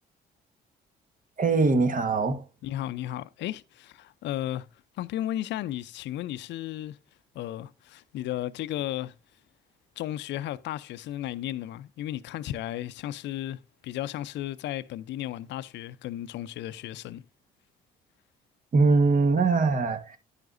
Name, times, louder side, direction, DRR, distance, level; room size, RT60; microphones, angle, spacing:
voice 1, 1.4-2.4 18.7-20.2, right 4 dB, 45° right, 1.6 m, -22 dB
voice 2, 2.6-4.7 5.0-7.0 7.3-9.1 10.0-17.2, left 13 dB, 70° left, 0.5 m, -34 dB
11.0 x 8.9 x 2.6 m
supercardioid pair, 60°, 19 cm